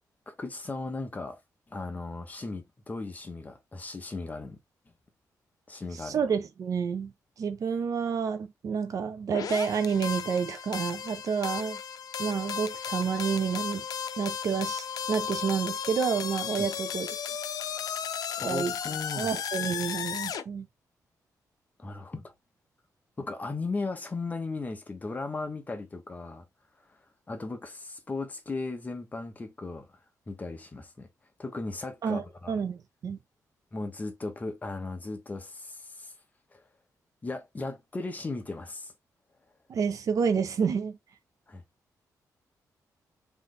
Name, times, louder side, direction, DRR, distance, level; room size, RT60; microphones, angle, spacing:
voice 1, 0.3-1.4 1.7-4.6 5.7-6.2 16.6-16.7 18.4-19.3 21.8-22.3 23.2-26.4 27.3-29.9 30.3-31.1 31.4-32.6 33.7-36.1 36.5-36.6 37.2-38.9 41.5-41.6, left 3 dB, 25° left, 1.0 m, -36 dB
voice 2, 6.0-11.8 12.2-13.8 14.2-17.2 18.4-18.7 19.2-20.7 32.0-33.2 39.7-41.0, right 6 dB, 60° right, 0.7 m, -29 dB
sound 1, 9.3-20.4, left 8 dB, 75° left, 0.5 m, -35 dB
3.4 x 3.2 x 3.9 m
cardioid pair, 125°, 7 cm